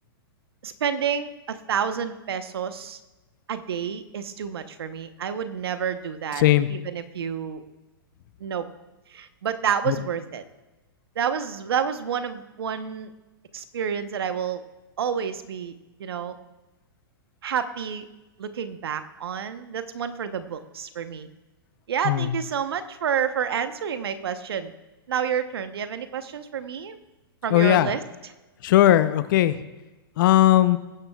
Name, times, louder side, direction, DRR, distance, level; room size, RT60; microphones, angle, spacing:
voice 1, 0.6-3.0 3.5-6.4 6.7-7.6 8.4-8.7 9.1-10.4 11.1-13.1 13.5-14.6 15.0-15.7 16.0-16.4 17.4-18.1 18.4-21.3 21.9-24.7 25.1-27.0 27.4-28.0, right 7 dB, 75° right, 10 dB, 1.0 m, -29 dB
voice 2, 6.4-6.7 9.9-10.0 22.0-22.4 27.5-27.9 28.6-29.6 30.2-30.8, left 13 dB, 55° left, 13 dB, 0.8 m, -18 dB
19.0 x 9.9 x 2.4 m, 1.1 s
hypercardioid pair, 120°, 13 cm